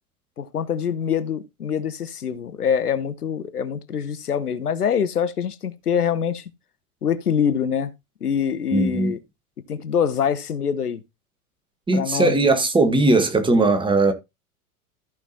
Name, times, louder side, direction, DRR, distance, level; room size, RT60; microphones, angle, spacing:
voice 1, 0.4-6.4 7.0-7.9 8.2-9.2 9.7-11.0 11.9-12.4, left 7 dB, 80° left, 0.9 m, -24 dB
voice 2, 8.7-9.1 11.9-14.1, right 2 dB, 10° right, 1.5 m, -19 dB
14.0 x 5.9 x 2.9 m
figure-of-eight pair, 90°, 45 cm